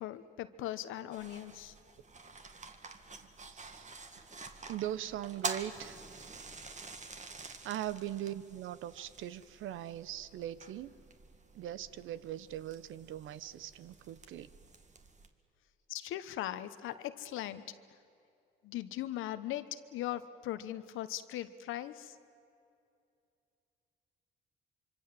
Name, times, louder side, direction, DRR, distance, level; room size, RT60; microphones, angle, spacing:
voice 1, 0.0-1.7 15.9-17.6 18.6-22.2, left 13 dB, 90° left, 12 dB, 1.1 m, -39 dB
sound 1, 1.1-15.3, right 4 dB, 35° right, 2.0 m, -47 dB
voice 2, 3.2-3.9 4.7-6.0 7.4-10.9 11.5-14.5, right 12 dB, 85° right, 16 dB, 0.9 m, -41 dB
25.5 x 25.0 x 7.6 m, 2.5 s
cardioid pair, 90°, 20 cm